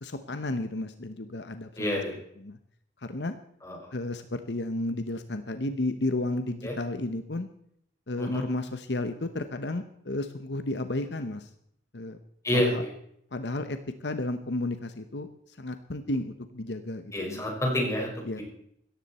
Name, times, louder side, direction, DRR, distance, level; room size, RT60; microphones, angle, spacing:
voice 1, 0.0-1.8 2.4-2.6 3.0-3.4 3.9-7.5 8.1-11.5 11.9-12.2 12.5-12.8 13.3-17.4 18.2-18.4, left 2 dB, 80° left, 9 dB, 1.0 m, -32 dB
voice 2, 1.8-2.2 3.6-3.8 6.6-6.7 8.2-8.4 12.4-12.9 17.1-18.1 18.4-18.5, left 1 dB, 20° left, -1 dB, 5.4 m, -28 dB
17.0 x 14.0 x 4.4 m, 0.72 s
head